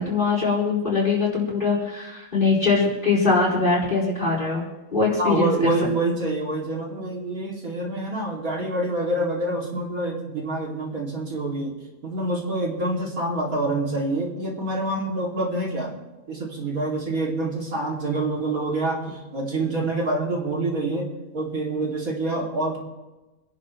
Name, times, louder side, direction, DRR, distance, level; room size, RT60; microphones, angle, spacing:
voice 1, 0.0-4.6 4.9-5.7, left 4 dB, 35° left, -4 dB, 4.7 m, -22 dB
voice 2, 5.2-11.7 12.0-15.9 16.3-21.1 21.3-22.8, right 2 dB, 75° right, -2 dB, 3.1 m, -26 dB
26.0 x 11.0 x 3.2 m, 1.1 s
omnidirectional pair, 1.5 m